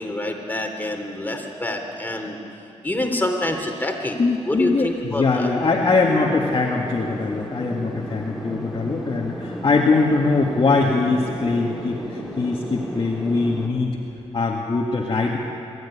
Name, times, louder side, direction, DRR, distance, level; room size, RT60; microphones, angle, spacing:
voice 1, 0.0-2.4 2.8-4.2 4.4-5.5, left 1 dB, 15° left, 3 dB, 3.2 m, -26 dB
voice 2, 4.2-14.0 14.3-15.4, left 3 dB, 45° left, -2 dB, 2.0 m, -22 dB
sound 1, 5.7-13.7, equal, ahead, 4.0 m, -34 dB
23.0 x 13.0 x 9.9 m, 2.7 s
cardioid pair, 85°, 12 cm